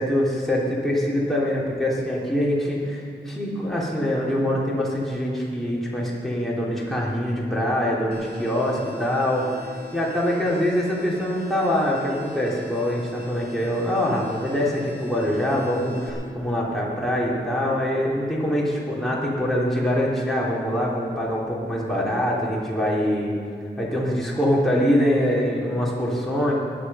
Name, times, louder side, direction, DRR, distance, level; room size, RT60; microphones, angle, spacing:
voice 1, 0.0-9.5 9.9-23.4 23.8-26.5, equal, ahead, -5 dB, 3.4 m, -24 dB
sound 1, 8.1-16.1, left 1 dB, 55° right, 2.7 m, -42 dB
16.5 x 10.5 x 5.7 m, 2.4 s
cardioid pair, 45°, 19 cm